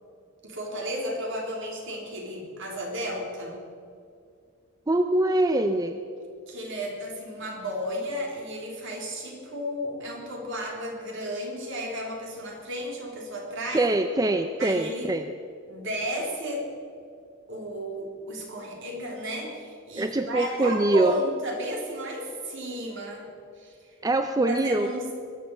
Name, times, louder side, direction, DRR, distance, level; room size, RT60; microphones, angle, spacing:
voice 1, 0.4-3.6 6.5-13.9 14.6-15.1 15.7-16.7 17.5-23.9 24.5-25.1, equal, 60° right, 0 dB, 3.6 m, -33 dB
voice 2, 4.9-6.0 13.7-15.3 20.0-21.2 24.0-24.9, right 2 dB, 15° right, 7 dB, 0.5 m, -23 dB
21.5 x 7.9 x 7.9 m, 2.3 s
head